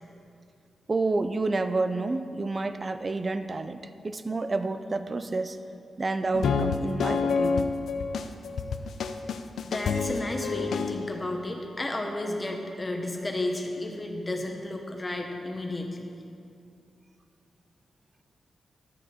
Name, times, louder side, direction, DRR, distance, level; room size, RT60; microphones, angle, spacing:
voice 1, 0.9-3.8 4.0-5.6 6.0-7.7, right 3 dB, 30° right, 10 dB, 0.4 m, -29 dB
sound 1, 6.3-11.3, left 5 dB, 85° left, 0.4 m, -28 dB
voice 2, 9.6-16.0, left 1 dB, 20° left, 2 dB, 1.0 m, -32 dB
12.0 x 6.4 x 4.3 m, 2.5 s
wide cardioid pair, 105°, 0 cm